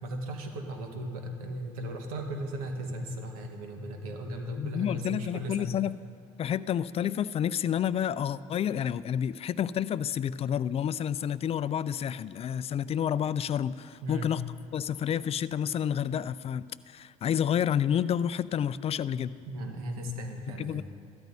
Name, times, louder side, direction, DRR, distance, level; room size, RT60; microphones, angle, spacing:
voice 1, 0.0-5.8 14.0-14.3 19.5-20.8, equal, 85° right, 4 dB, 1.3 m, -36 dB
voice 2, 4.6-6.0 6.4-14.4 14.7-19.3 20.6-20.8, left 9 dB, 35° left, 17 dB, 0.3 m, -29 dB
15.5 x 13.0 x 2.7 m, 2.3 s
hypercardioid pair, 70°, 18 cm